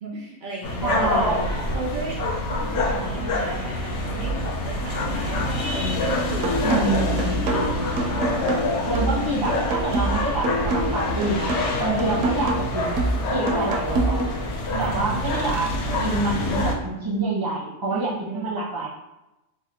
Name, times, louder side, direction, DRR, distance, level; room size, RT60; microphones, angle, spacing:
voice 1, 0.0-1.3 1.7-7.0 7.4-8.2 8.9-9.3 11.9-12.1 14.7-15.5 17.9-18.6, right 3 dB, 90° right, -3 dB, 0.4 m, -35 dB
sound 1, 0.6-16.8, left 1 dB, 65° left, 0.8 m, -26 dB
voice 2, 0.8-1.5 6.6-7.4 8.9-14.2 14.8-15.7 16.0-18.9, right 2 dB, 25° right, -4 dB, 0.5 m, -27 dB
sound 2, 6.4-14.4, right 2 dB, 70° right, 0.9 m, -27 dB
3.2 x 2.2 x 2.9 m, 0.96 s
omnidirectional pair, 1.4 m